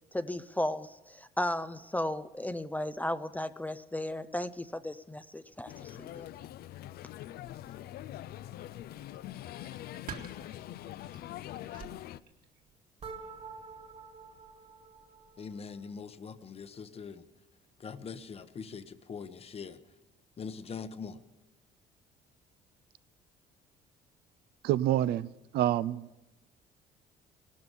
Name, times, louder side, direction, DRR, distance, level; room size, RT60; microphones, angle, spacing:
voice 1, 0.1-6.3, left 1 dB, 10° left, 0.4 m, -35 dB
sound 1, 5.7-12.2, left 13 dB, 65° left, 0.5 m, -43 dB
sound 2, 7.4-12.7, right 6 dB, 55° right, 1.9 m, -51 dB
sound 3, 13.0-15.9, right 5 dB, 40° right, 1.8 m, -48 dB
voice 2, 15.4-17.3 17.8-19.8 20.4-21.2, left 5 dB, 35° left, 0.9 m, -42 dB
voice 3, 24.6-25.3 25.5-26.1, right 12 dB, 75° right, 0.5 m, -27 dB
17.0 x 12.5 x 5.4 m
cardioid pair, 110°, 17 cm